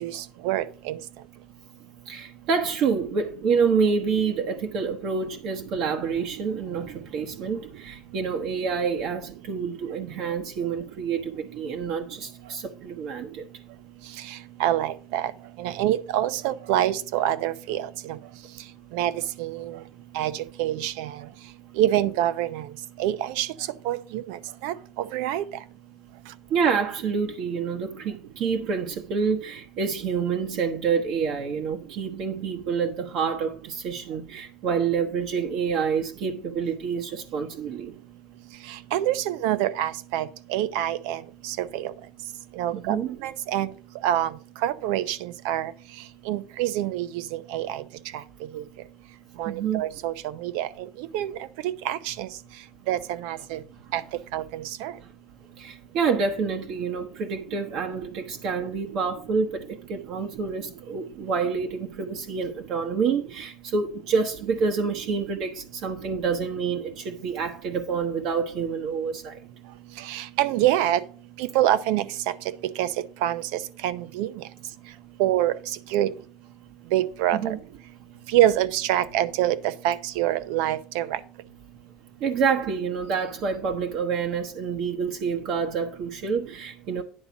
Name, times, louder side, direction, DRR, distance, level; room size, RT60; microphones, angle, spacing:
voice 1, 0.0-1.0 14.6-15.3 15.6-17.9 18.9-19.1 19.4-19.8 20.1-21.1 21.8-22.6 23.0-23.5 23.8-24.4 24.6-24.7 25.1-25.4 38.9-41.9 42.6-43.0 43.2-43.7 44.0-44.3 44.6-45.7 46.3-47.8 48.5-48.6 49.4-50.1 50.4-50.7 51.1-51.3 51.6-52.3 52.9-53.6 53.9-54.0 54.3-54.9 70.1-71.0 71.4-72.0 72.8-72.9 73.2-73.4 73.8-74.3 75.2-75.6 75.9-76.1 76.9-77.4 78.3-81.1, right 13 dB, 80° right, 0.7 m, -25 dB
voice 2, 2.0-13.5 26.5-37.9 42.7-43.2 49.4-49.8 53.8-53.9 55.0-55.1 55.6-69.4 77.3-77.6 82.2-87.0, right 5 dB, 55° right, 1.1 m, -27 dB
9.8 x 4.0 x 7.1 m
cardioid pair, 135°, 0 cm